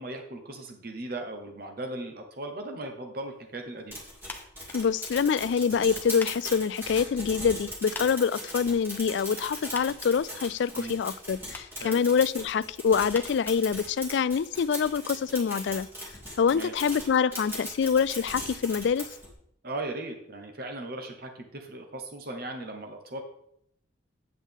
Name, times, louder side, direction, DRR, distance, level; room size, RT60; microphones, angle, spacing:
voice 1, 0.0-4.0 10.7-10.9 11.8-12.0 16.5-16.7 19.6-23.2, right 2 dB, 50° right, 4 dB, 1.1 m, -38 dB
sound 1, 3.9-19.3, equal, 10° right, 2.5 m, -39 dB
sound 2, 4.2-14.4, left 2 dB, 10° left, 0.8 m, -48 dB
voice 2, 4.7-15.9 16.4-19.1, left 6 dB, 65° left, 18 dB, 0.3 m, -26 dB
8.5 x 8.2 x 3.6 m, 0.72 s
head